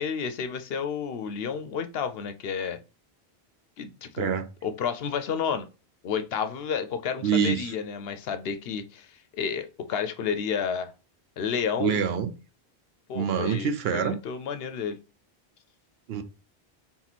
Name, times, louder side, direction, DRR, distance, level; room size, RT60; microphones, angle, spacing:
voice 1, 0.0-2.8 3.8-4.3 4.6-5.7 6.0-10.9 11.4-12.0 13.1-15.0, left 6 dB, 70° left, 0.7 m, -31 dB
voice 2, 4.2-4.5 7.2-7.7 11.8-12.3 13.1-14.2 16.1-16.2, right 7 dB, 70° right, 0.8 m, -26 dB
3.8 x 2.9 x 4.1 m
omnidirectional pair, 1.1 m